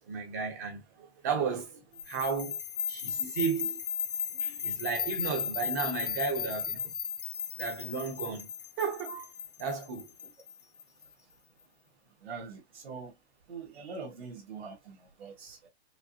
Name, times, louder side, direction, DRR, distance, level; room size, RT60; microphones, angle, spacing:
voice 1, 0.1-2.6 2.9-3.8 4.3-6.9 7.6-8.5 8.8-9.3 9.6-10.1, right 5 dB, 15° right, 0.7 m, -34 dB
sound 1, 2.0-11.0, left 7 dB, 50° left, 0.9 m, -36 dB
voice 2, 12.2-13.1 13.5-15.7, right 5 dB, 60° right, 1.7 m, -43 dB
5.0 x 2.1 x 2.8 m
hypercardioid pair, 175°, 34 cm